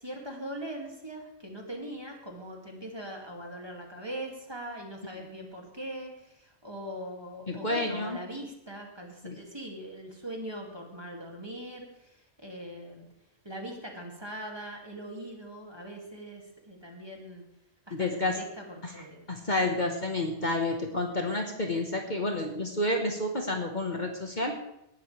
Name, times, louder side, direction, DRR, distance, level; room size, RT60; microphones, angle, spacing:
voice 1, 0.0-13.1 13.4-17.5 17.9-19.2, right 1 dB, 20° right, 0 dB, 2.5 m, -41 dB
voice 2, 7.5-8.2 9.2-9.4 17.9-18.3 18.8-18.9 19.3-24.6, left 2 dB, 40° left, 2 dB, 1.6 m, -30 dB
19.0 x 12.5 x 3.4 m, 0.83 s
omnidirectional pair, 1.2 m